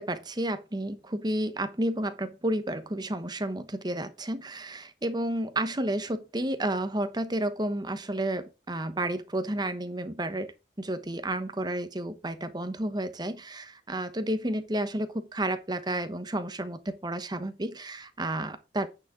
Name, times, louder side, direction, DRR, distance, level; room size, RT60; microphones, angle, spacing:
voice 1, 0.0-18.9, right 1 dB, 25° right, 1.0 m, -31 dB
9.3 x 6.1 x 3.8 m
head